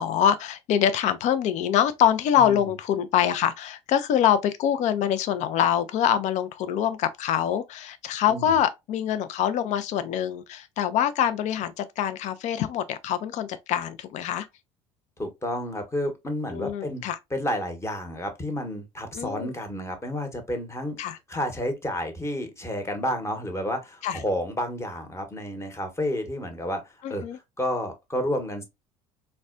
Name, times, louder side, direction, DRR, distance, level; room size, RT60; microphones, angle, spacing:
voice 1, 0.0-14.5 16.5-17.2 19.1-19.5 21.0-21.2 24.0-24.2 27.0-27.4, left 9 dB, 50° left, 0.4 m, -24 dB
voice 2, 15.2-28.6, left 1 dB, 15° left, 1.0 m, -31 dB
4.1 x 2.1 x 2.4 m
hypercardioid pair, 60°, 16 cm